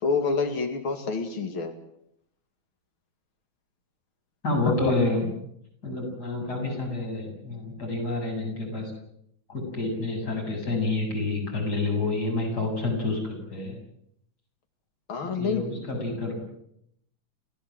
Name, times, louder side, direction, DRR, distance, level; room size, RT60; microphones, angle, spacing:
voice 1, 0.0-1.7 4.7-4.9 15.1-15.6, left 4 dB, 85° left, 6 dB, 3.0 m, -27 dB
voice 2, 4.4-5.3 5.8-8.9 9.5-13.7 15.2-16.4, left 3 dB, 50° left, 1 dB, 8.5 m, -28 dB
30.0 x 16.0 x 7.8 m, 0.73 s
omnidirectional pair, 2.2 m